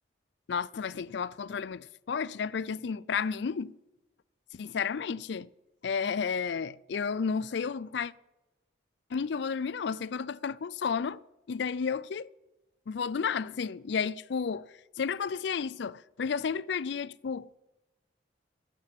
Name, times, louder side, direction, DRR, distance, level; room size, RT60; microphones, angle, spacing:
voice 1, 0.5-3.7 4.5-5.5 5.8-8.1 9.1-11.2 11.5-12.3 12.9-17.5, left 6 dB, 65° left, 0.4 m, -32 dB
14.0 x 7.7 x 8.7 m
head